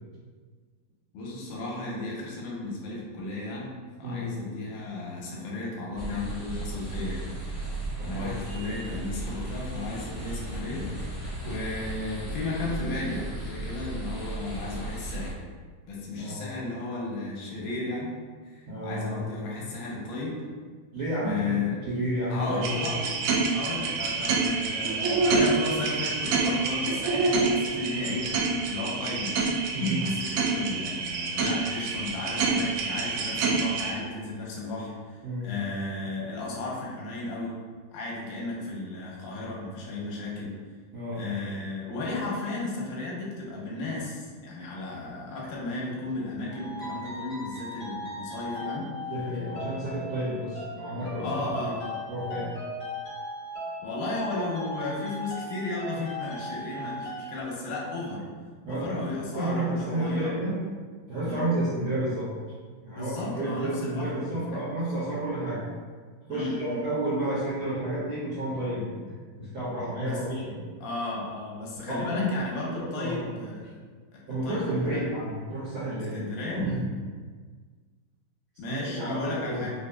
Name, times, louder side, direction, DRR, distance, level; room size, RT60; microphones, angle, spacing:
voice 1, 1.1-3.7 4.0-7.3 8.0-15.4 15.9-18.1 18.4-20.4 21.2-21.8 22.3-23.1 23.5-28.3 28.7-29.4 30.0-37.6 37.9-40.5 41.1-48.9 51.2-52.0 53.8-58.2 58.7-60.4 61.2-61.5 62.9-64.6 66.3-66.9 70.0-70.2 70.8-73.6 74.1-75.0 76.1-76.6 78.6-79.7, left 2 dB, 75° left, -4 dB, 2.2 m, -34 dB
sound 1, 6.0-15.3, right 2 dB, 40° right, 1.0 m, -36 dB
voice 2, 16.2-16.6 18.7-19.2 20.9-21.6 21.8-22.9 29.7-30.1 35.2-35.5 40.9-41.2 49.1-51.7 52.1-52.5 58.6-58.9 59.3-60.6 61.1-62.3 62.8-65.7 66.3-70.6 71.8-72.2 72.7-73.3 74.3-76.2 76.5-76.8 78.7-79.6, right 1 dB, 70° right, -14 dB, 1.2 m, -31 dB
sound 2, 22.6-33.9, right 4 dB, 85° right, 1.7 m, -27 dB
sound 3, 46.5-57.4, left 1 dB, 45° left, 1.3 m, -38 dB
5.2 x 2.6 x 2.2 m, 1.5 s
omnidirectional pair, 3.9 m